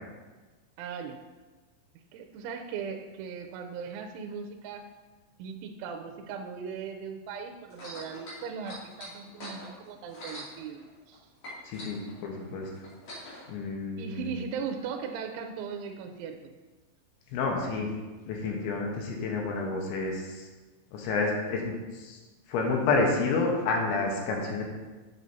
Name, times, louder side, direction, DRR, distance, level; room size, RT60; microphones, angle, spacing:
voice 1, 0.8-1.2 2.1-4.9 5.4-11.2 14.0-16.5, right 6 dB, 85° right, 4 dB, 2.9 m, -38 dB
sound 1, 7.7-11.2 11.4-13.4 14.2-14.3, equal, 45° left, 3.3 m, -43 dB
voice 2, 11.6-12.7 13.5-14.3 17.3-17.9 18.3-20.4 20.9-21.7 22.0-22.2 22.5-24.6, left 3 dB, 75° left, 0 dB, 3.1 m, -29 dB
8.6 x 7.4 x 2.7 m, 1.2 s
omnidirectional pair, 5.6 m